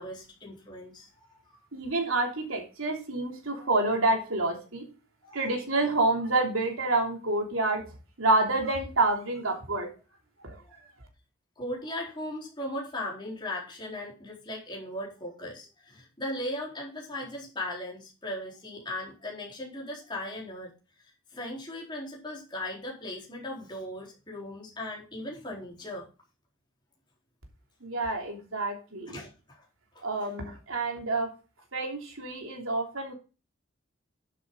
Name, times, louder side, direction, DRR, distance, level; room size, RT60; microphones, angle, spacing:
voice 1, 0.0-1.4 3.6-3.7 5.2-5.5 10.6-10.7 11.6-20.7 21.3-26.1 29.1-29.6 29.9-30.3, left 1 dB, 20° left, -3 dB, 4.2 m, -38 dB
voice 2, 1.7-4.8 5.3-7.8 8.2-9.9 10.4-10.6 27.8-29.1 30.0-31.3 31.7-33.1, right 2 dB, 85° right, 2 dB, 3.1 m, -28 dB
11.5 x 7.7 x 3.9 m, 0.33 s
head